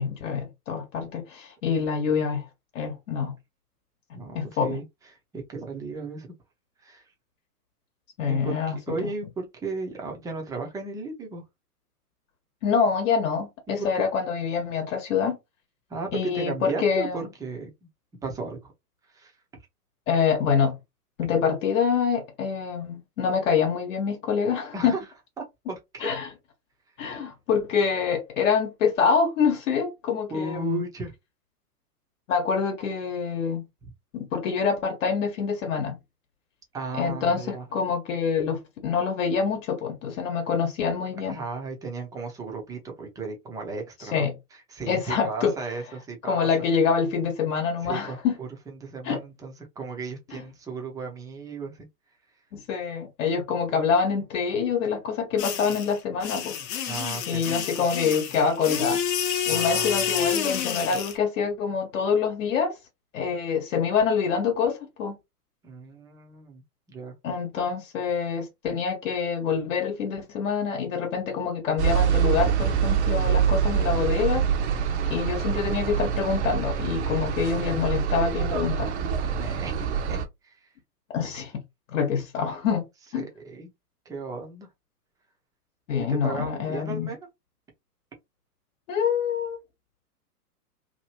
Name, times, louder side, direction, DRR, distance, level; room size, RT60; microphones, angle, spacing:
voice 1, 0.0-2.5 2.7-3.3 4.3-4.8 8.2-9.1 12.6-15.4 16.1-17.3 20.1-20.8 21.2-24.9 26.0-26.3 27.0-30.8 32.3-33.6 34.1-36.0 37.0-41.4 44.0-44.3 44.9-45.5 46.3-48.4 49.0-49.2 50.3-50.4 52.5-56.6 57.3-59.0 59.5-62.7 63.1-65.1 67.2-74.5 75.1-78.9 81.1-81.5 81.9-82.8 83.1-83.3 85.9-87.1 88.9-89.6, left 6 dB, 55° left, 1.0 m, -26 dB
voice 2, 4.1-4.8 5.3-6.3 6.8-7.0 8.3-11.4 13.7-14.1 15.9-17.7 18.2-18.7 19.1-19.3 24.7-25.0 25.4-26.1 30.3-31.1 33.8-33.9 36.7-37.7 41.2-46.5 47.8-51.9 56.9-57.5 59.5-60.3 65.6-66.6 66.9-67.1 79.2-80.2 80.4-80.7 83.1-83.7 84.1-84.7 86.0-87.3, right 4 dB, 10° right, 0.6 m, -35 dB
sound 1, 55.4-61.1, left 8 dB, 30° left, 0.8 m, -29 dB
sound 2, 71.8-80.2, right 8 dB, 45° right, 0.8 m, -25 dB
2.9 x 2.7 x 2.8 m
hypercardioid pair, 120°, 47 cm